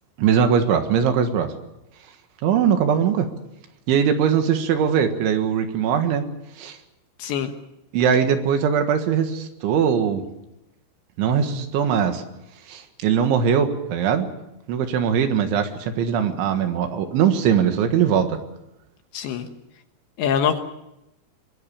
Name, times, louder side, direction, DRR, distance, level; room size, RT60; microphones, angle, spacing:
voice 1, 0.2-1.5 2.4-3.3 3.9-6.2 6.6-6.8 7.9-10.2 11.2-12.2 12.7-14.3 14.7-18.3, right 7 dB, 70° right, 7 dB, 3.8 m, -21 dB
voice 2, 7.2-7.5 19.1-19.5 20.2-20.6, left 8 dB, 70° left, 7 dB, 3.2 m, -23 dB
24.5 x 21.0 x 7.1 m, 0.88 s
omnidirectional pair, 6.0 m